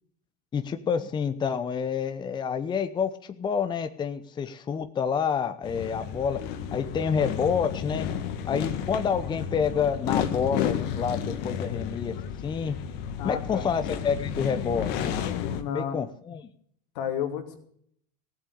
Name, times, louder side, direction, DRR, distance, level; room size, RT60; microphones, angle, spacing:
voice 1, 0.5-6.4 6.7-8.1 8.5-12.1 12.4-12.8 13.2-15.3 15.7-16.5, left 6 dB, 20° left, 10 dB, 0.8 m, -28 dB
sound 1, 5.6-15.6, left 8 dB, 55° left, 1.8 m, -32 dB
voice 2, 13.2-13.6 15.5-16.0 16.9-17.6, left 9 dB, 80° left, 5 dB, 2.8 m, -31 dB
16.0 x 7.7 x 8.5 m, 0.66 s
supercardioid pair, 125°, 20 cm